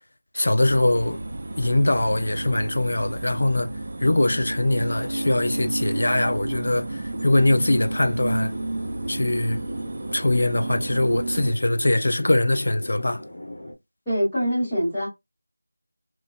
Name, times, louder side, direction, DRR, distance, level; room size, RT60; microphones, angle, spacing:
voice 1, 0.3-1.2 1.6-3.7 4.0-8.5 9.1-9.6 10.1-13.2, left 1 dB, 55° left, 0.4 m, -22 dB
sound 1, 0.6-11.5, right 2 dB, 40° right, 0.3 m, -31 dB
sound 2, 7.1-13.7, left 1 dB, 40° left, 0.7 m, -40 dB
voice 2, 14.1-15.1, equal, 5° left, 0.9 m, -24 dB
3.0 x 2.2 x 2.2 m
figure-of-eight pair, 175°, 0 cm